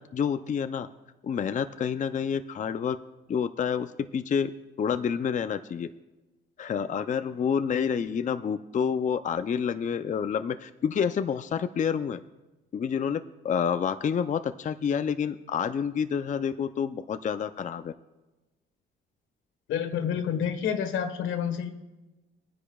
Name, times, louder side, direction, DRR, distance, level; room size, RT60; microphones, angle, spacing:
voice 1, 0.1-0.9 1.2-3.0 3.3-4.5 4.8-5.9 6.6-12.2 12.7-17.9, left 7 dB, 40° left, 10 dB, 0.5 m, -28 dB
voice 2, 19.7-21.7, left 8 dB, 85° left, 6 dB, 1.3 m, -28 dB
22.5 x 9.9 x 2.3 m, 1.1 s
cardioid pair, 90°, 20 cm